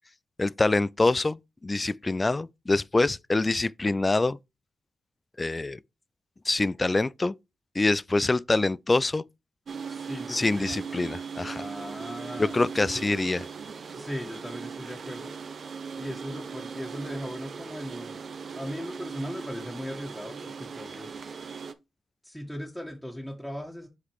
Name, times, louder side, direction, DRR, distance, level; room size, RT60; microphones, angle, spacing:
voice 1, 0.4-4.4 5.4-5.8 6.5-7.3 7.8-9.2 10.3-11.6 12.4-13.4, left 2 dB, 30° left, 0.4 m, -25 dB
sound 1, 9.7-21.7, right 5 dB, 65° right, 0.7 m, -39 dB
voice 2, 9.9-10.8 11.6-12.6 12.9-13.0 13.9-15.4 16.0-18.2 18.5-21.1 22.2-23.9, equal, 5° left, 1.6 m, -38 dB
6.3 x 3.9 x 4.8 m
cardioid pair, 55°, 0 cm